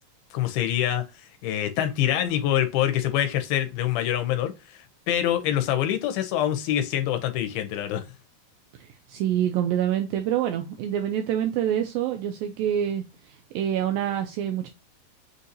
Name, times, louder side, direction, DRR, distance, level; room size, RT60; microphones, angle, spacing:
voice 1, 0.3-1.0 1.4-4.5 5.1-8.0, left 11 dB, 80° left, 2.4 m, -25 dB
voice 2, 8.8-13.0 13.5-14.7, right 10 dB, 90° right, 2.0 m, -26 dB
6.3 x 2.7 x 2.7 m
omnidirectional pair, 4.6 m